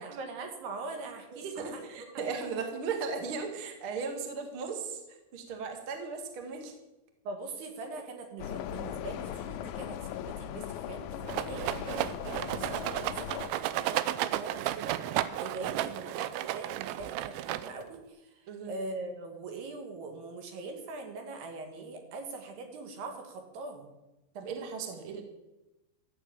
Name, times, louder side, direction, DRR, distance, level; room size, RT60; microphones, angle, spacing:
voice 1, 0.0-1.8 2.2-2.3 7.3-23.9, right 3 dB, 70° right, 4 dB, 3.9 m, -42 dB
voice 2, 1.3-5.0 5.3-6.7 12.3-12.4 18.5-18.7 24.3-25.2, right 5 dB, 45° right, 4 dB, 1.8 m, -37 dB
sound 1, 8.4-13.5, left 11 dB, 85° left, 2.1 m, -38 dB
Rattle, 11.3-18.0, right 13 dB, 90° right, 2.9 m, -33 dB
14.0 x 8.3 x 8.6 m, 0.99 s
omnidirectional pair, 5.1 m